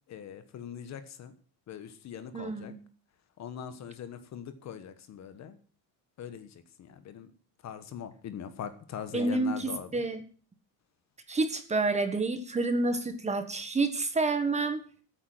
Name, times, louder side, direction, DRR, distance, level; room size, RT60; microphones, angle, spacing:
voice 1, 0.1-1.3 1.7-2.7 3.4-5.6 6.2-7.3 7.6-10.0, left 8 dB, 35° left, 11 dB, 1.3 m, -42 dB
voice 2, 2.3-2.8 9.1-10.2 11.3-14.8, right 3 dB, 15° right, 8 dB, 1.4 m, -29 dB
14.0 x 8.7 x 7.8 m, 0.42 s
cardioid pair, 170°, 46 cm